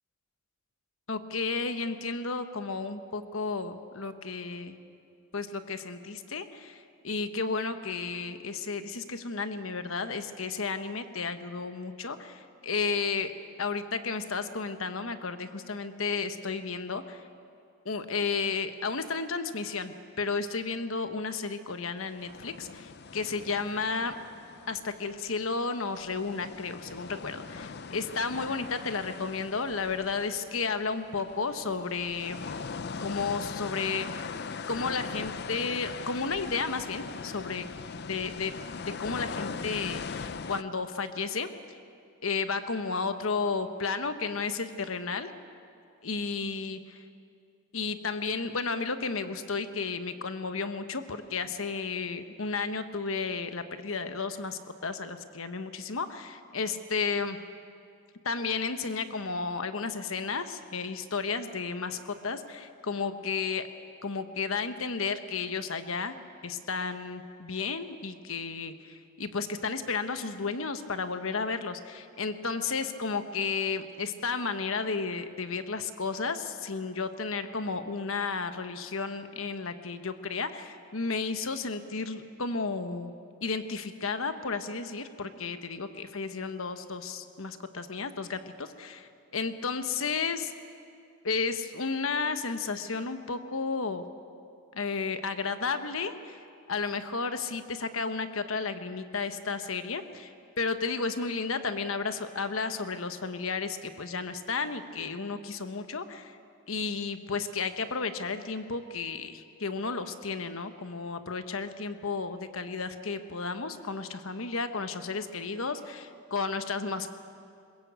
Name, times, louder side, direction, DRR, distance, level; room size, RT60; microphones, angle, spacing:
voice 1, 1.1-4.8 5.3-13.3 13.6-17.2 17.8-24.1 24.7-32.4 33.0-34.3 34.7-37.7 38.1-38.5 39.0-41.5 42.2-45.3 46.0-47.0 47.7-57.4 58.2-63.7 64.0-66.2 66.4-83.1 83.4-90.5 91.2-94.1 94.7-96.4 96.7-100.3 100.6-106.4 106.7-117.1, left 4 dB, 70° left, 9 dB, 1.2 m, -33 dB
sound 1, 22.2-25.7 26.0-40.6, left 5 dB, 50° left, 0.6 m, -40 dB
21.5 x 21.0 x 8.2 m, 2.4 s
head